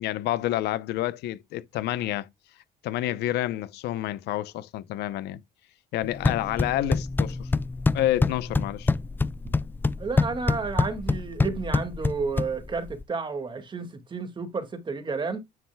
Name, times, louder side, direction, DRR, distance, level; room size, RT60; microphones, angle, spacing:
voice 1, 0.0-2.3 2.8-5.4 5.9-7.5 7.9-8.9, left 14 dB, 80° left, 0.8 m, -29 dB
sound 1, 6.0-13.0, left 3 dB, 10° left, 0.4 m, -26 dB
voice 2, 10.0-15.4, right 4 dB, 30° right, 2.1 m, -31 dB
9.6 x 7.1 x 2.3 m
cardioid pair, 110°, 17 cm